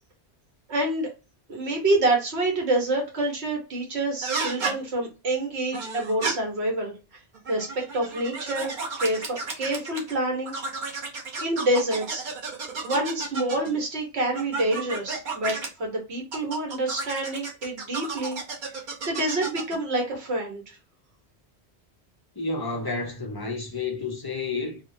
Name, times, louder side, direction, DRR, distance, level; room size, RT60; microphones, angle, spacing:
voice 1, 0.7-1.1 1.5-6.9 7.5-10.5 11.4-12.3 12.8-18.4 19.1-20.8, right 2 dB, 75° right, 1.3 m, -27 dB
sound 1, 4.2-4.7 5.7-6.3 7.3-10.1 10.4-13.7 14.3-15.7 16.3-19.8, right 4 dB, 50° right, 0.9 m, -32 dB
voice 2, 22.4-24.8, left 3 dB, 35° left, 0.4 m, -30 dB
3.1 x 2.2 x 2.6 m
omnidirectional pair, 1.1 m